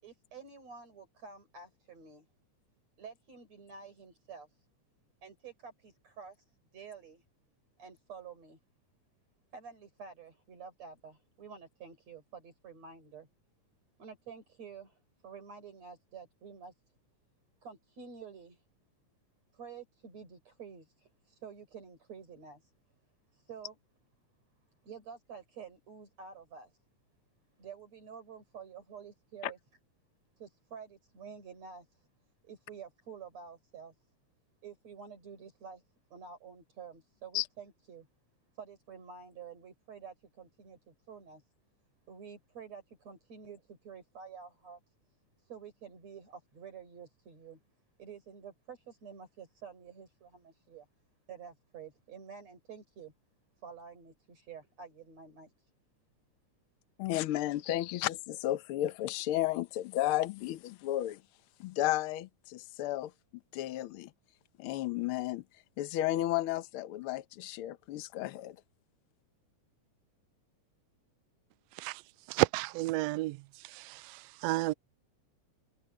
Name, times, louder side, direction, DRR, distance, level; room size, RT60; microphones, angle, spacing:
voice 1, 0.0-2.3 3.0-4.5 5.2-6.4 6.7-7.2 7.8-8.6 9.5-13.3 14.0-16.7 17.6-18.6 19.5-22.7 23.3-23.8 24.8-26.7 27.6-29.6 30.4-32.1 32.4-33.9 34.6-35.8 36.1-38.1 38.6-41.4 42.1-44.8 45.4-47.6 48.0-50.9 51.3-53.1 53.6-55.5, right 6 dB, 60° right, 5.9 m, -49 dB
voice 2, 57.0-61.2 61.6-63.1 63.5-64.1 64.6-65.4 65.8-68.6, left 14 dB, 90° left, 1.1 m, -33 dB
voice 3, 72.3-73.4 73.6-74.7, right 19 dB, 85° right, 1.5 m, -31 dB
omnidirectional pair, 3.5 m